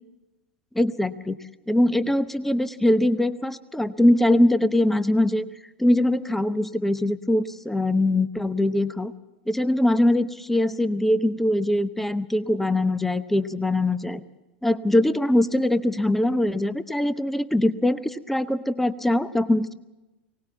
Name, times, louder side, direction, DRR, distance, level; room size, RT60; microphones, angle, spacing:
voice 1, 0.7-1.4 1.7-5.5 5.8-9.1 9.5-14.2 14.6-19.7, left 1 dB, 5° left, 13 dB, 0.9 m, -22 dB
24.0 x 18.5 x 7.1 m, 1.0 s
hypercardioid pair, 95°, 6 cm